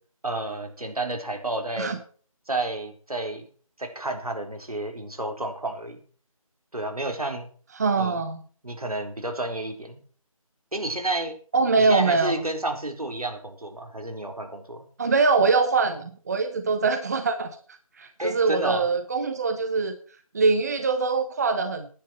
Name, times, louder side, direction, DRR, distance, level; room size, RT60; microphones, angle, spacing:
voice 1, 0.2-2.0 2.5-3.5 3.8-6.0 6.7-7.5 8.0-8.2 8.6-10.0 10.7-11.3 11.8-14.9 18.2-18.9, right 2 dB, 85° right, 4 dB, 4.2 m, -31 dB
voice 2, 7.8-8.4 11.5-12.3 15.0-17.6 18.0-19.9 20.3-21.9, right 4 dB, 30° right, 9 dB, 1.1 m, -23 dB
16.0 x 10.5 x 4.5 m, 0.43 s
figure-of-eight pair, 165°, 18 cm